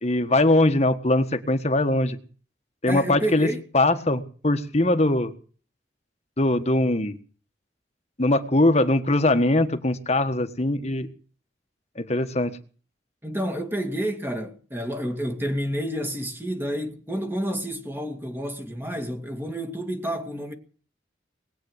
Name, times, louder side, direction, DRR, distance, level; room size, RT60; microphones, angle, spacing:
voice 1, 0.0-2.2 2.8-3.5 3.7-5.3 6.4-7.2 8.2-11.1 12.0-12.5, left 1 dB, 35° left, 1.4 m, -21 dB
voice 2, 2.9-3.6 13.2-20.5, equal, 10° right, 2.2 m, -29 dB
20.5 x 8.5 x 7.9 m
head